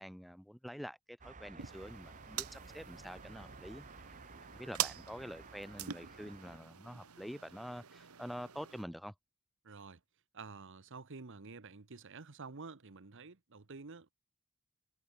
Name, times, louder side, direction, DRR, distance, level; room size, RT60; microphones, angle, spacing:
voice 1, 0.0-3.8 4.4-9.1, equal, ahead, 0.5 m, -47 dB
sound 1, 1.2-6.6, right 3 dB, 35° right, 1.2 m, -54 dB
sound 2, 1.6-8.8, right 10 dB, 85° right, 1.3 m, -45 dB
voice 2, 9.6-10.0 10.3-14.1, right 4 dB, 60° right, 1.1 m, -50 dB
head